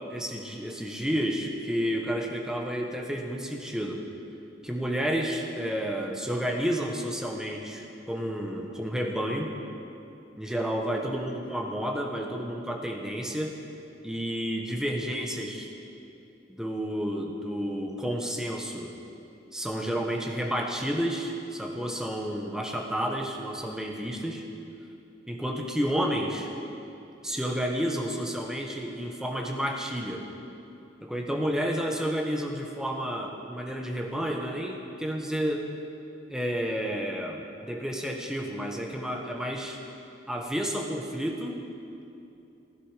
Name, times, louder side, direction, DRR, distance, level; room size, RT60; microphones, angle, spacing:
voice 1, 0.1-4.0 4.6-9.5 10.4-13.6 14.0-15.7 16.5-19.0 19.5-24.4 25.3-26.5 27.2-30.3 31.0-35.7 36.3-39.8 40.3-41.6, equal, 5° right, 1 dB, 1.1 m, -31 dB
16.0 x 11.5 x 5.0 m, 2.7 s
head